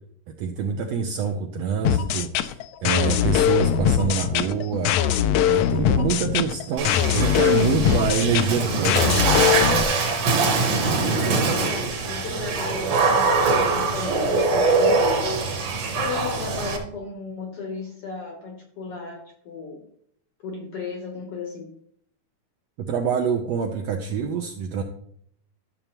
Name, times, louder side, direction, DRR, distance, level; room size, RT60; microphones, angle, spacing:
voice 1, 0.4-5.0 5.5-9.2 22.8-24.8, right 6 dB, 80° right, 3 dB, 1.5 m, -26 dB
sound 1, 1.8-9.8, left 10 dB, 85° left, 1.6 m, -21 dB
Water / Splash splatter, 6.8-16.8, right 3 dB, 60° right, 2.3 m, -23 dB
voice 2, 10.6-15.4 15.9-19.8 20.4-21.7, left 4 dB, 65° left, 2 dB, 1.5 m, -35 dB
12.5 x 6.7 x 2.9 m, 0.66 s
omnidirectional pair, 3.7 m